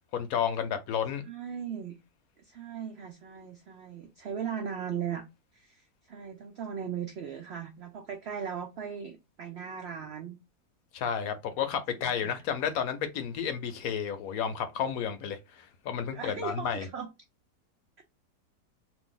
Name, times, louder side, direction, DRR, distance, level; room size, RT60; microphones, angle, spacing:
voice 1, 0.1-1.3 10.9-16.9, left 8 dB, 70° left, 1.0 m, -32 dB
voice 2, 1.2-1.9 2.4-5.2 5.5-10.4 11.9-12.4 16.1-17.1, right 7 dB, 85° right, 0.5 m, -38 dB
2.6 x 2.5 x 3.7 m
omnidirectional pair, 1.7 m